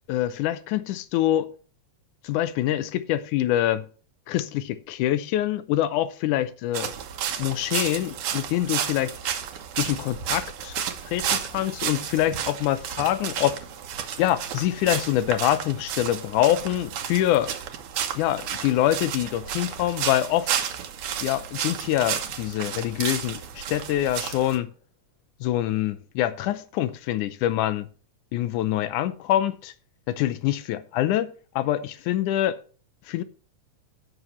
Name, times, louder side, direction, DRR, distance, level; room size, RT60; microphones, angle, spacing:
voice 1, 0.0-1.5 2.2-3.9 4.3-6.9 7.4-9.1 9.8-10.8 11.1-13.6 14.2-17.5 18.2-20.5 21.2-24.7 25.4-27.9 28.3-29.7 30.1-32.6 33.1-33.2, left 13 dB, 85° left, 2.3 m, -25 dB
sound 1, 6.7-24.6, right 9 dB, 80° right, 2.7 m, -32 dB
16.0 x 6.4 x 3.1 m
omnidirectional pair, 3.5 m